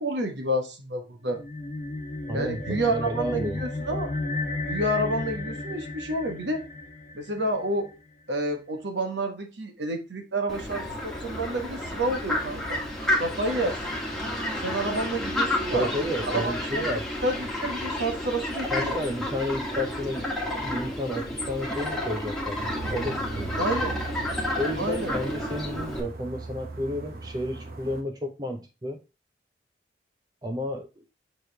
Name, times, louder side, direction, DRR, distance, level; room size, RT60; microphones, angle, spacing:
voice 1, 0.0-1.4 2.3-4.1 4.6-6.6 7.1-7.9 8.3-12.8 13.2-13.8 14.6-15.9 16.3-17.0 17.2-19.0 23.6-24.0 24.8-25.1, right 1 dB, 70° right, 1.3 m, -29 dB
sound 1, 1.3-7.9, left 2 dB, 40° left, 1.2 m, -34 dB
voice 2, 2.3-3.6 15.7-17.1 18.6-22.6 22.9-23.6 24.6-29.0 30.4-31.0, equal, 20° right, 0.5 m, -32 dB
Fowl, 10.5-26.0, left 1 dB, 5° left, 1.5 m, -31 dB
sound 2, 22.5-28.0, right 3 dB, 50° right, 1.1 m, -38 dB
6.6 x 4.8 x 3.4 m
head